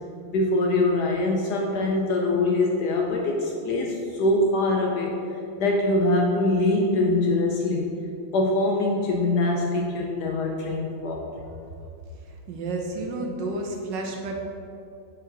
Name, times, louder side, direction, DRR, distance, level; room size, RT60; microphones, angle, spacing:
voice 1, 0.3-5.2 5.6-7.9 8.3-11.3, left 2 dB, 75° left, 0 dB, 1.0 m, -23 dB
voice 2, 12.5-14.4, right 2 dB, 70° right, 1 dB, 1.3 m, -30 dB
6.3 x 4.5 x 3.9 m, 2.5 s
omnidirectional pair, 2.1 m